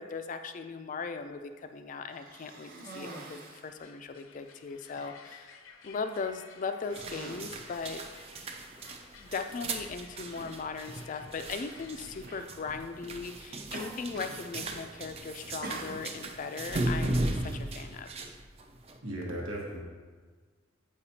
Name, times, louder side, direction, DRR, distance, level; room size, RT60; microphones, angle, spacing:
voice 1, 0.0-5.6 5.8-8.0 9.1-18.1, left 5 dB, 40° left, 7 dB, 0.3 m, -38 dB
Cough, 2.1-3.7 4.4-4.6 4.9-5.4 6.2-6.4 6.8-8.8 9.7-9.8 11.6-11.9 12.3-12.5 13.7-14.4 14.7-15.1 15.6-16.4, right 2 dB, 45° right, 0.8 m, -45 dB
sound 1, 3.5-12.4, left 5 dB, 85° left, 0.6 m, -55 dB
sound 2, 6.9-19.0, right 2 dB, 30° right, 0.4 m, -37 dB
voice 2, 19.0-19.8, right 1 dB, 80° right, -2 dB, 1.2 m, -36 dB
8.2 x 4.9 x 2.8 m, 1.5 s
head